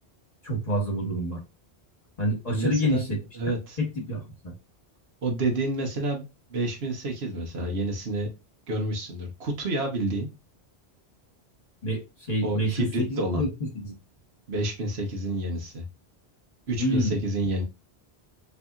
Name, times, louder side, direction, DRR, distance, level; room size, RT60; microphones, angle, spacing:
voice 1, 0.4-1.4 2.2-3.2 3.8-4.5 11.8-12.0 12.3-13.5 13.7-14.0 16.8-17.2, equal, 40° left, -1 dB, 1.3 m, -27 dB
voice 2, 2.5-3.8 5.2-8.3 8.7-10.3 12.4-13.4 14.5-15.8 16.7-17.6, right 2 dB, 75° right, 2 dB, 1.5 m, -29 dB
4.2 x 3.4 x 2.4 m, 0.26 s
omnidirectional pair, 1.1 m